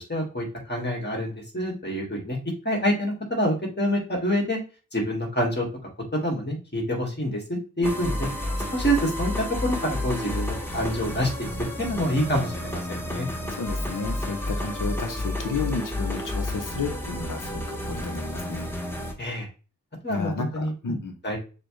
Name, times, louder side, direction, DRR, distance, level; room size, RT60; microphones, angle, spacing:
voice 1, 0.0-2.4 2.6-4.6 4.9-5.7 6.1-8.3 8.7-11.5 11.8-13.3 19.2-19.5 20.0-21.0 21.2-21.4, equal, 30° left, -2 dB, 2.0 m, -27 dB
sound 1, 7.8-19.1, left 1 dB, 5° left, 1.1 m, -31 dB
voice 2, 13.3-18.7 20.1-21.1, left 4 dB, 65° left, 5 dB, 0.9 m, -32 dB
6.6 x 2.3 x 3.3 m, 0.33 s
wide cardioid pair, 80°, 34 cm